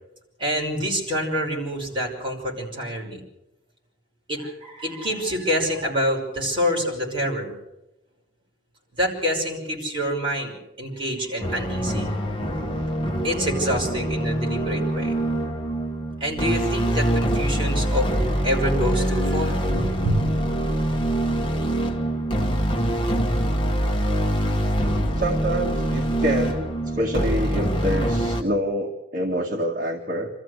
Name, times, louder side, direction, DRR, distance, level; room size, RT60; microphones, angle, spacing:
voice 1, 0.4-3.2 4.3-7.6 8.9-10.5 10.8-12.2 13.2-15.1 16.2-20.2, equal, 30° right, -2 dB, 5.7 m, -26 dB
sound 1, 11.4-28.4, right 1 dB, 30° left, 1.3 m, -24 dB
voice 2, 25.2-26.7 27.0-30.3, equal, 45° right, 0 dB, 1.8 m, -26 dB
26.0 x 14.0 x 8.0 m, 0.94 s
head